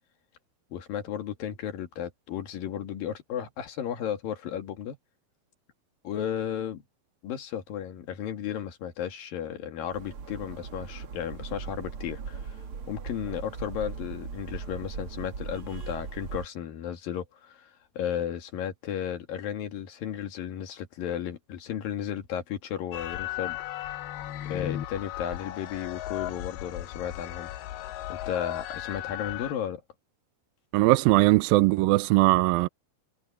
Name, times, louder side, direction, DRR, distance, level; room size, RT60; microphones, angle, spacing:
voice 1, 0.7-5.0 6.0-6.8 7.2-12.6 12.9-23.6 24.5-27.5 28.1-29.8, left 9 dB, 65° left, 3.6 m, -34 dB
sound 1, 9.9-16.5, right 5 dB, 45° right, 2.1 m, -39 dB
sound 2, 22.9-29.5, left 13 dB, 90° left, 2.9 m, -36 dB
voice 2, 30.7-32.7, right 19 dB, 80° right, 2.3 m, -20 dB
omnidirectional pair, 4.4 m